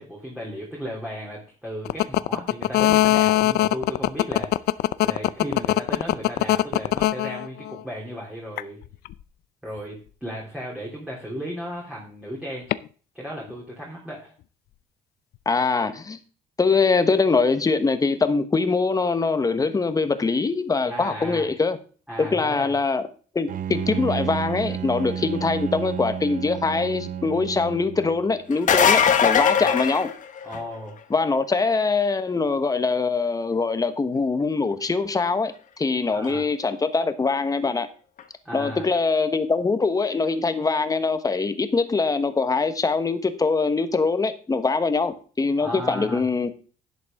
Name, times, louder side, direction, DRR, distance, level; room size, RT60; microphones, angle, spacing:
voice 1, 0.0-4.7 5.0-8.8 9.6-12.7 13.1-14.3 20.8-21.5 22.1-22.7 29.6-29.7 30.4-31.0 36.1-36.4 38.4-38.9 45.6-46.2, equal, 5° right, 3.3 m, -35 dB
sound 1, 1.9-7.8 8.6-9.1 12.7-12.8, left 15 dB, 70° left, 0.5 m, -20 dB
voice 2, 15.4-16.2 16.6-21.8 22.2-23.0 23.3-30.1 31.1-37.9 38.5-46.5, left 4 dB, 20° left, 1.2 m, -23 dB
Bowed string instrument, 23.5-28.4, right 8 dB, 55° right, 0.9 m, -31 dB
sound 2, 28.5-30.7 36.3-36.4 38.2-38.3, left 8 dB, 50° left, 1.4 m, -20 dB
11.0 x 8.1 x 3.6 m
cardioid pair, 110°, 17 cm